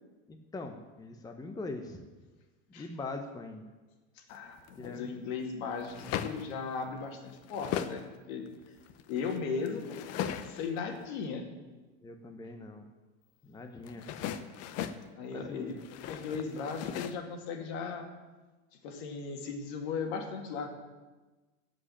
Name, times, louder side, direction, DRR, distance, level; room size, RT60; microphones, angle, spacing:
voice 1, 0.3-2.1 2.7-3.7 4.8-5.2 12.0-12.9 13.4-14.1 15.3-15.8, left 3 dB, 10° left, 5 dB, 0.9 m, -42 dB
voice 2, 4.2-8.4 9.1-10.1 10.4-11.5 15.2-15.8 16.1-18.1 18.8-20.7, left 5 dB, 60° left, 4 dB, 2.3 m, -37 dB
sound 1, 4.4-4.9 5.7-6.6 7.0-8.1 8.5-10.8 13.8-15.1 15.7-17.2, left 9 dB, 45° left, 0.9 m, -38 dB
14.0 x 5.3 x 8.8 m, 1.2 s
supercardioid pair, 120°, 36 cm